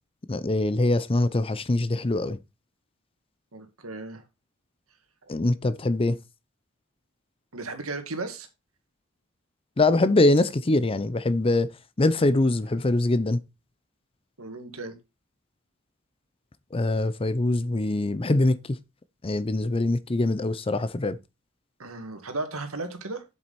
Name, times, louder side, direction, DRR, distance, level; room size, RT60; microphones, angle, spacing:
voice 1, 0.3-2.4 5.3-6.2 9.8-11.7 12.0-13.4 16.7-18.8 19.2-21.2, left 2 dB, 25° left, 0.6 m, -23 dB
voice 2, 3.5-4.2 7.5-8.5 14.4-15.0 21.8-23.2, right 3 dB, 90° right, 2.1 m, -35 dB
7.6 x 7.6 x 4.2 m
head